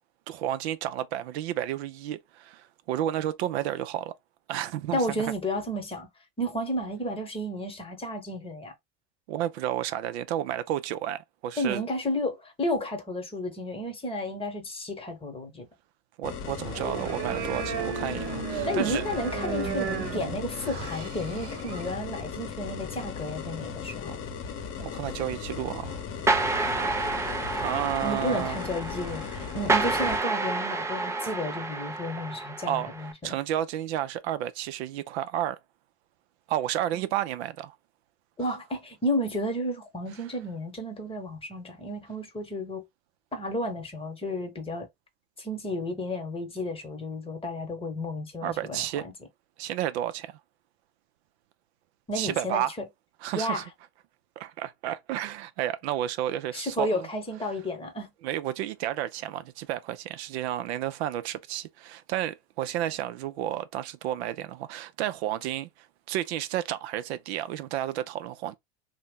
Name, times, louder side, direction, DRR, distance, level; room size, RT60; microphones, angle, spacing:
voice 1, 0.3-4.1 4.5-5.3 9.3-11.8 16.2-19.0 24.8-26.0 27.6-28.6 32.7-32.9 33.2-35.6 36.5-37.7 48.4-49.1 49.6-50.4 52.1-52.7 53.2-53.6 54.4-57.1 58.2-65.7 66.1-68.6, right 12 dB, 80° right, 0.5 m, -31 dB
voice 2, 4.9-6.1 6.4-8.7 11.6-15.7 18.7-24.2 28.0-33.3 36.9-37.1 38.4-42.8 43.3-44.9 45.4-49.1 52.1-52.6 53.3-53.6 56.5-58.1, left 1 dB, 15° left, 1.0 m, -32 dB
sound 1, 16.2-30.2, left 6 dB, 40° left, 0.8 m, -37 dB
sound 2, 16.7-21.9, right 7 dB, 50° right, 1.0 m, -34 dB
sound 3, 26.3-33.1, right 3 dB, 10° right, 0.3 m, -29 dB
2.8 x 2.1 x 3.4 m
supercardioid pair, 100°, 32 cm